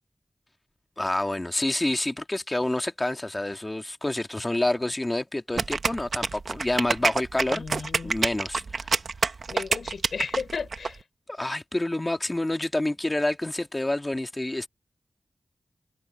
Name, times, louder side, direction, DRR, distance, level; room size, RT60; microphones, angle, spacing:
voice 1, 1.0-8.9 11.3-14.7, left 1 dB, 20° left, 1.7 m, -28 dB
sound 1, 5.6-10.9, right 4 dB, 75° right, 1.1 m, -27 dB
voice 2, 7.5-8.1 9.5-11.0, left 5 dB, 90° left, 6.0 m, -34 dB
wide cardioid pair, 75°, 0 cm